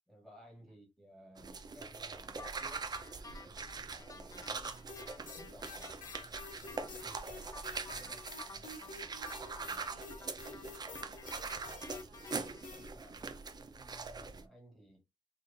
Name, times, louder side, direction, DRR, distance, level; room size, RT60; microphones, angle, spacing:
voice 1, 0.1-2.9 3.2-7.4 7.9-8.2 8.5-8.7 9.6-9.9 12.7-15.0, equal, ahead, 1.9 m, -58 dB
sound 1, 1.4-14.4, right 4 dB, 30° right, 0.5 m, -43 dB
sound 2, 2.4-12.7, left 4 dB, 25° left, 0.4 m, -53 dB
sound 3, 4.9-12.9, left 4 dB, 85° left, 1.4 m, -50 dB
voice 2, 8.0-9.1 9.9-12.2, right 3 dB, 60° right, 2.0 m, -65 dB
4.2 x 3.2 x 2.7 m
wide cardioid pair, 165°, 14 cm